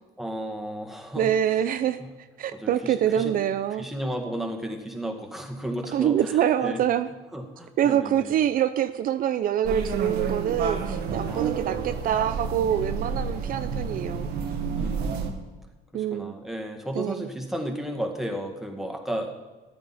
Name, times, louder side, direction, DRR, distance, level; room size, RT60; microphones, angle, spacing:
voice 1, 0.2-1.3 2.0-2.1 2.5-3.3 3.8-6.8 7.3-8.3 11.3-11.7 14.7-15.3 15.9-19.4, equal, ahead, 1 dB, 1.9 m, -34 dB
voice 2, 1.2-2.0 2.4-3.9 5.9-7.1 7.8-14.3 15.9-16.3 17.0-17.3, right 10 dB, 55° right, 11 dB, 0.5 m, -25 dB
sound 1, 9.6-15.3, right 5 dB, 85° right, 1.6 m, -30 dB
14.0 x 11.0 x 4.2 m, 1.3 s
cardioid pair, 110°, 17 cm